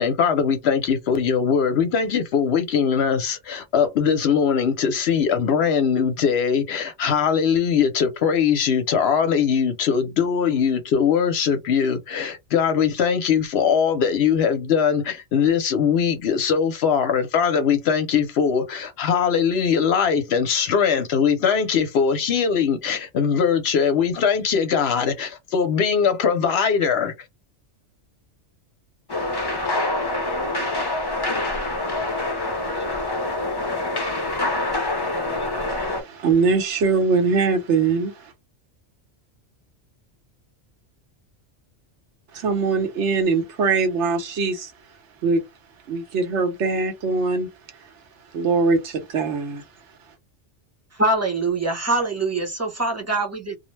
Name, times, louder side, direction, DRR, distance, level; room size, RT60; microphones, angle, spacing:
voice 1, 0.0-27.1, left 7 dB, 65° left, 0.8 m, -21 dB
sound 1, 29.1-36.0, left 2 dB, 30° left, 0.4 m, -25 dB
voice 2, 35.7-38.3 42.3-44.7 45.2-45.4 45.9-47.5 48.3-49.6, right 4 dB, 70° right, 1.1 m, -22 dB
voice 3, 51.0-53.6, right 2 dB, 15° right, 0.6 m, -23 dB
2.5 x 2.0 x 3.1 m
omnidirectional pair, 1.2 m